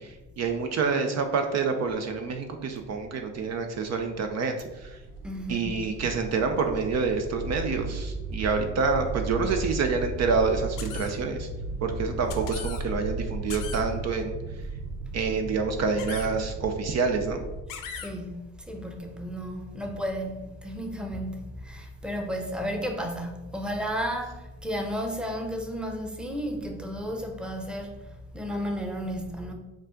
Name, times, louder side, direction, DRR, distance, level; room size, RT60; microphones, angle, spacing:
voice 1, 0.0-5.0 5.5-11.5 11.8-14.3 15.1-17.4, right 4 dB, 50° right, 0.6 m, -27 dB
sound 1, 4.6-17.6, right 3 dB, 85° right, 0.7 m, -35 dB
voice 2, 5.2-5.8 17.9-29.5, equal, 5° right, 0.8 m, -33 dB
sound 2, 10.8-11.1 12.3-12.8 13.5-13.8 16.0-16.3 17.7-18.1, left 8 dB, 70° left, 0.7 m, -38 dB
5.2 x 2.5 x 3.8 m
supercardioid pair, 65°, 33 cm